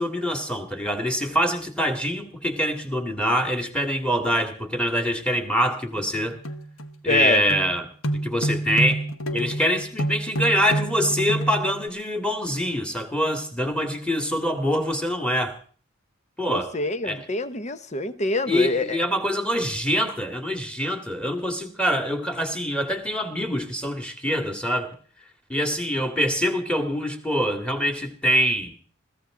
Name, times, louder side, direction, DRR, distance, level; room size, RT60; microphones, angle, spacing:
voice 1, 0.0-6.4 7.0-7.9 8.1-9.0 9.3-15.6 16.4-16.7 17.0-17.2 18.5-24.9 25.5-28.8, equal, 5° left, 2.1 m, -24 dB
sound 1, 5.9-6.9 7.5-7.8 8.0-11.9, right 1 dB, 85° left, 1.3 m, -28 dB
voice 2, 7.1-7.4 16.5-19.1, left 2 dB, 35° left, 0.9 m, -26 dB
21.5 x 15.5 x 3.8 m
head